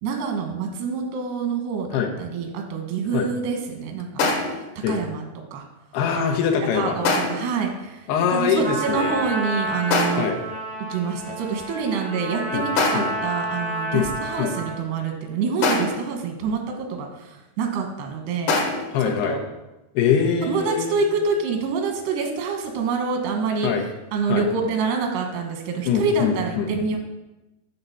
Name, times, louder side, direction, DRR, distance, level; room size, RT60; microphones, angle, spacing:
voice 1, 0.0-4.4 4.9-5.2 5.5-5.6 6.1-6.3 6.7-8.0 8.3-10.3 10.9-18.5 19.0-19.4 20.5-23.7 24.1-27.0, right 5 dB, 90° right, 3 dB, 3.2 m, -26 dB
sound 1, 4.2-4.7 7.0-7.6 9.9-10.4 12.8-13.3 15.6-16.1 18.5-19.0, left 3 dB, 65° left, 2.3 m, -24 dB
voice 2, 5.9-7.0 8.1-9.2 10.1-10.4 12.5-12.7 12.9-13.1 13.9-14.1 14.4-14.5 18.9-19.4 19.9-21.0 23.6-23.8 24.3-24.4 25.8-26.7, left 7 dB, 85° left, 3 dB, 2.8 m, -23 dB
Trumpet, 8.6-14.8, right 2 dB, 35° right, 0.4 m, -30 dB
8.7 x 4.0 x 6.8 m, 1.0 s
omnidirectional pair, 4.6 m